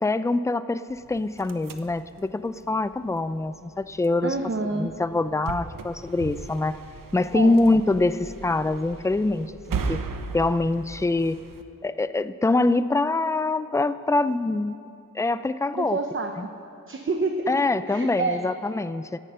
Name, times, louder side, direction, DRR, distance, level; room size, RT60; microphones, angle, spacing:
voice 1, 0.0-4.4 4.7-6.8 7.1-10.0 10.3-11.4 11.8-14.7 15.1-16.0 16.4-16.5 17.5-19.2, left 2 dB, 10° left, 14 dB, 0.4 m, -24 dB
sound 1, 0.9-11.6, right 5 dB, 80° right, 0.9 m, -37 dB
voice 2, 4.2-4.9 7.3-7.6 15.7-16.4 16.9-17.6 17.9-18.5, right 3 dB, 40° right, 5 dB, 0.8 m, -28 dB
16.5 x 10.5 x 5.5 m, 2.7 s
wide cardioid pair, 95°, 33 cm